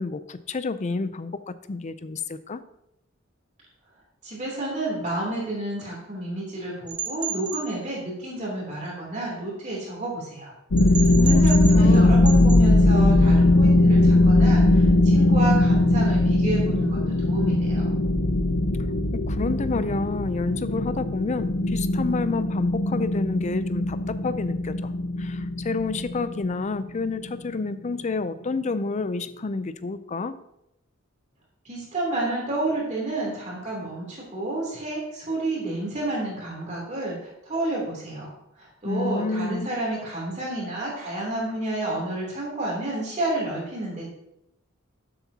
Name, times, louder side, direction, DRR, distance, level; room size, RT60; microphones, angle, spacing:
voice 1, 0.0-2.6 11.1-11.5 11.7-12.3 19.1-24.9 25.2-30.4 38.8-39.7, left 3 dB, 35° left, 13 dB, 0.5 m, -29 dB
voice 2, 4.2-10.5 10.9-17.0 17.3-17.9 31.6-38.3 38.6-44.1, right 2 dB, 35° right, -4 dB, 3.2 m, -30 dB
sound 1, 6.9-7.7 10.8-12.0 12.2-12.6, right 7 dB, 55° right, 1.5 m, -33 dB
sound 2, 10.7-27.3, left 2 dB, 80° left, 0.8 m, -20 dB
12.0 x 7.9 x 2.8 m, 0.83 s
head